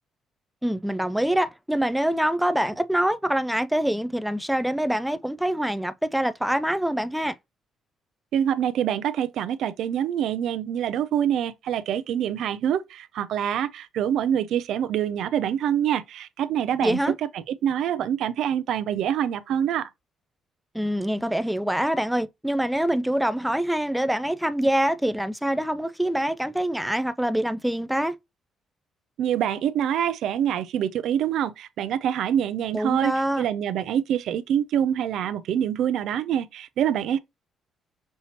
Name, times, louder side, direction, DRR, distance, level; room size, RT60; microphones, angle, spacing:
voice 1, 0.6-7.3 16.8-17.1 20.7-28.1 32.7-33.4, right 1 dB, 5° right, 0.3 m, -25 dB
voice 2, 8.3-17.0 17.3-19.9 29.2-37.2, right 9 dB, 80° right, 0.4 m, -25 dB
5.5 x 2.8 x 2.9 m
cardioid pair, 90°, 0 cm